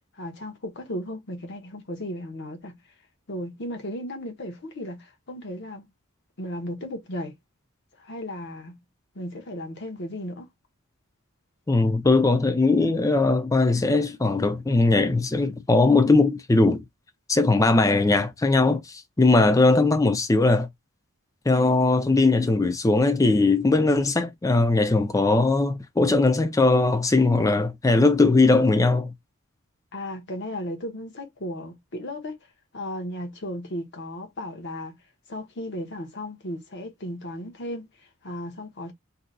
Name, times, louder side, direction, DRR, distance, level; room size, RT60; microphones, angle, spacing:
voice 1, 0.1-2.8 3.3-5.9 6.4-7.4 8.0-8.8 9.1-10.5 29.9-32.4 32.7-35.0 35.3-38.9, left 1 dB, 55° left, 0.9 m, -35 dB
voice 2, 11.7-16.8 17.3-20.7 21.5-29.1, left 3 dB, 15° left, 0.4 m, -20 dB
2.7 x 2.2 x 3.7 m
head